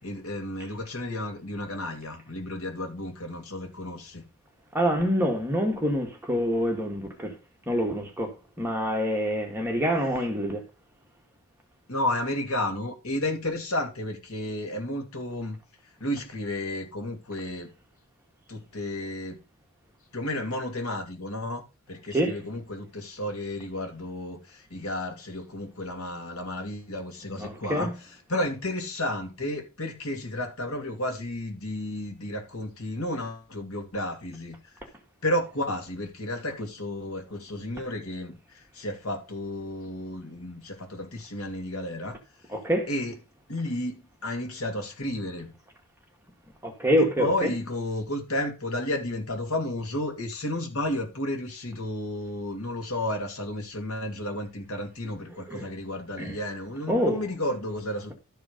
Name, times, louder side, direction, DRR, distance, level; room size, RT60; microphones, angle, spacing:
voice 1, 0.0-4.2 11.9-15.6 16.0-17.7 18.5-19.4 20.1-34.6 35.2-42.2 42.9-43.2 43.5-45.5 47.0-58.1, left 1 dB, 70° left, 2.8 m, -32 dB
voice 2, 4.7-7.3 7.7-8.3 8.6-10.6 22.1-22.4 27.4-27.9 42.5-42.9 46.6-47.5 55.5-55.6 56.2-56.3 56.9-57.2, equal, 10° right, 2.0 m, -26 dB
12.5 x 4.9 x 5.2 m
head